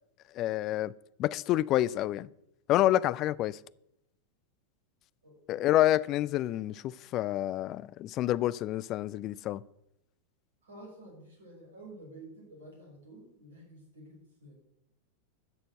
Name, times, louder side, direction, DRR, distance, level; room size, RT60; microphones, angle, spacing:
voice 1, 0.3-0.9 1.2-2.3 2.7-3.6 5.5-9.6, left 14 dB, 35° left, 0.4 m, -28 dB
voice 2, 5.2-5.8 10.6-14.5, right 1 dB, 70° right, 5.9 m, -50 dB
12.5 x 6.8 x 7.9 m
figure-of-eight pair, 90°, 0 cm